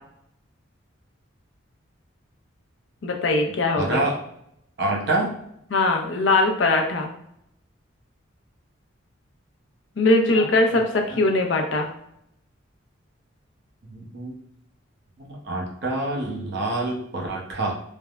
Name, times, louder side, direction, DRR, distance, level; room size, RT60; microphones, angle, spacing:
voice 1, 3.0-4.1 5.7-7.1 10.0-11.9, left 2 dB, 65° left, 3 dB, 0.5 m, -21 dB
voice 2, 3.8-4.2 4.8-5.3 10.3-10.5 11.1-11.2 13.9-14.3 15.2-17.7, right 2 dB, 55° right, -2 dB, 0.7 m, -27 dB
3.3 x 2.0 x 2.3 m, 0.76 s
head